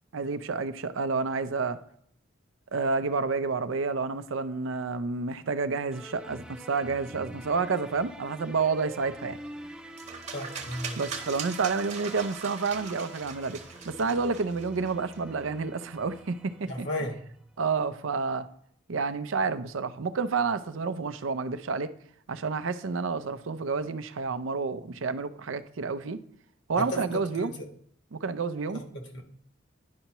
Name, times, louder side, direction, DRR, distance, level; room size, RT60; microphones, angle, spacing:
voice 1, 0.1-1.8 2.7-9.4 11.0-13.6 13.9-16.9 17.6-18.5 18.9-21.9 22.3-26.2 26.7-27.5 28.1-28.8, right 4 dB, 80° right, 12 dB, 0.5 m, -29 dB
sound 1, 5.9-17.2, right 1 dB, 5° right, 0.4 m, -46 dB
sound 2, 10.0-15.2, right 6 dB, 35° right, 1.0 m, -40 dB
voice 2, 10.3-11.0 16.7-17.2 26.8-27.5 28.7-29.2, left 1 dB, 60° left, 3 dB, 1.3 m, -35 dB
10.5 x 5.5 x 3.0 m, 0.66 s
head